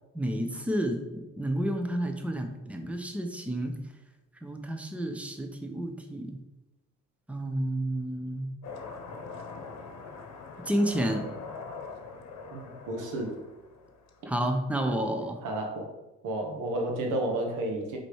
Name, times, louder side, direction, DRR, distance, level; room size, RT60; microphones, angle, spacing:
voice 1, 0.1-3.8 4.4-6.4 7.3-8.5 10.6-11.3 14.3-15.4, right 1 dB, 5° right, 5 dB, 0.9 m, -30 dB
sound 1, 8.6-14.6, left 4 dB, 60° left, 1.0 m, -43 dB
voice 2, 12.5-13.4 15.4-15.9 16.2-18.0, right 1 dB, 90° right, 2 dB, 1.4 m, -31 dB
5.1 x 4.4 x 4.7 m, 1.0 s
cardioid pair, 90°, 30 cm